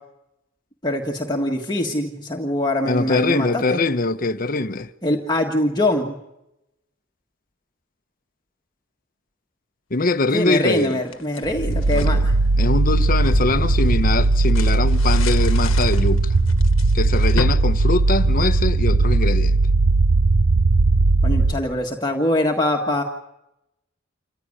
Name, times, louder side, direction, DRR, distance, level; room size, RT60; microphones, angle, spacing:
voice 1, 0.8-3.8 5.0-6.1 10.3-12.3 21.2-23.0, left 1 dB, 20° left, 1.6 m, -23 dB
voice 2, 2.9-4.9 9.9-11.0 11.9-12.3 12.6-16.3 16.9-19.6, left 3 dB, 45° left, 0.9 m, -22 dB
sound 1, 10.2-12.2 12.7-18.7, left 3 dB, 90° left, 1.3 m, -34 dB
sound 2, 11.4-21.5, right 3 dB, 70° right, 0.8 m, -18 dB
28.0 x 15.5 x 9.9 m
head